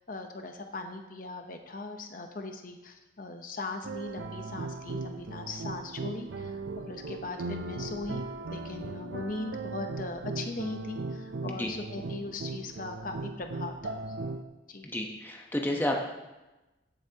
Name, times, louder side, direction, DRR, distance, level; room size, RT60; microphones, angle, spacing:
voice 1, 0.1-8.2 8.5-14.2 14.7-14.9, left 2 dB, 50° left, 4 dB, 0.9 m, -39 dB
sound 1, 3.8-14.4, right 3 dB, 85° right, 0.6 m, -38 dB
voice 2, 14.8-16.0, left 1 dB, 10° left, 1 dB, 0.9 m, -31 dB
16.0 x 8.0 x 2.9 m, 1.0 s
head